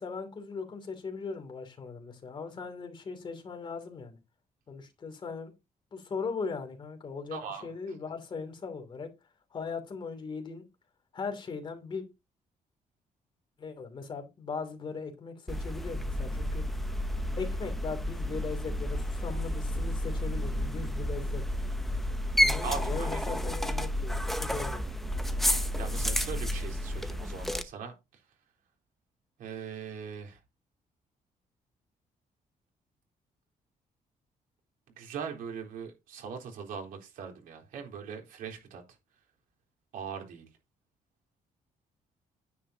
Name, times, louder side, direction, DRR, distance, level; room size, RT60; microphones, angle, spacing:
voice 1, 0.0-4.2 4.7-5.5 5.9-9.1 9.5-10.6 11.1-12.0 13.6-16.6 17.4-21.4 22.4-24.9, left 5 dB, 35° left, 2.8 m, -39 dB
voice 2, 7.3-7.7 22.6-23.2 25.8-27.9 29.4-30.4 35.0-38.8 39.9-40.4, right 6 dB, 90° right, 3.7 m, -40 dB
sound 1, 15.5-27.6, left 1 dB, ahead, 0.8 m, -31 dB
10.0 x 9.4 x 2.8 m
cardioid pair, 160°, 14 cm